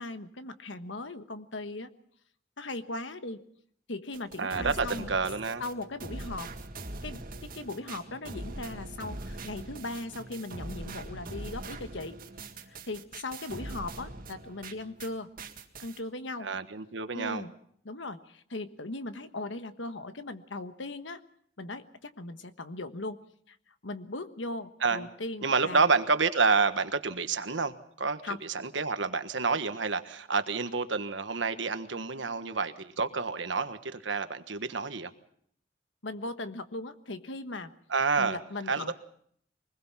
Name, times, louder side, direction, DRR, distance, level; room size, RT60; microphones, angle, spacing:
voice 1, 0.0-1.9 2.6-3.4 3.9-5.1 5.6-6.5 7.0-12.2 12.7-15.3 15.8-16.5 17.1-17.5 17.8-21.2 21.6-23.2 23.5-23.6 23.8-25.9 28.2-28.4 36.0-37.7 38.2-38.9, left 2 dB, 75° left, 10 dB, 1.3 m, -38 dB
sound 1, 4.1-15.1 15.4-16.0, right 2 dB, 50° right, 2.0 m, -42 dB
voice 2, 4.4-5.6 16.4-17.4 24.8-25.1 25.4-35.1 37.9-38.4 38.7-38.9, right 4 dB, 70° right, 10 dB, 1.4 m, -29 dB
24.0 x 20.5 x 5.8 m, 0.64 s
head